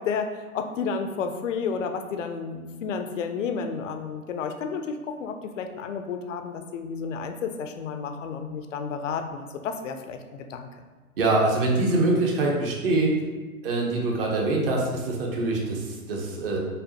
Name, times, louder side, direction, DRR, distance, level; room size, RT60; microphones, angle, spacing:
voice 1, 0.0-10.7, left 5 dB, 60° left, 6 dB, 0.5 m, -31 dB
voice 2, 11.2-13.1 13.6-16.6, right 2 dB, 40° right, 0 dB, 0.8 m, -24 dB
5.1 x 2.1 x 2.8 m, 1.3 s
hypercardioid pair, 125°, 44 cm